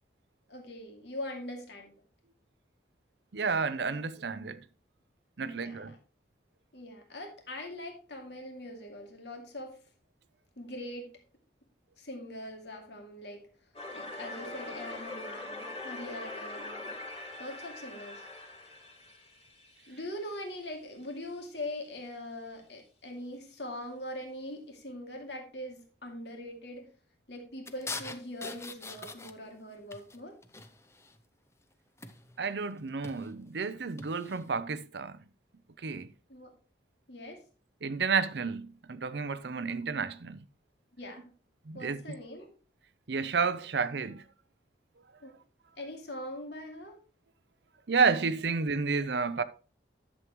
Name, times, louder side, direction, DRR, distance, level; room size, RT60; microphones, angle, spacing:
voice 1, 0.5-2.0 5.4-6.0 6.7-9.8 10.6-11.2 12.0-13.4 13.9-16.9 17.4-18.3 19.9-26.9 27.3-30.4 36.3-36.5 37.1-37.4 40.9-41.3 41.7-42.5 45.2-45.3 45.8-47.0, left 1 dB, 65° left, 2.4 m, -42 dB
voice 2, 3.3-4.6 5.4-5.9 32.4-35.2 35.8-36.1 37.8-40.4 41.7-42.0 43.1-44.2 47.9-49.4, right 5 dB, 65° right, 0.6 m, -31 dB
sound 1, 13.7-20.6, left 2 dB, 30° left, 2.8 m, -43 dB
sound 2, 27.7-29.6 29.9-31.2 32.0-32.4 32.9-33.3 34.0-34.4, left 3 dB, 15° left, 0.6 m, -43 dB
11.0 x 7.5 x 3.1 m
head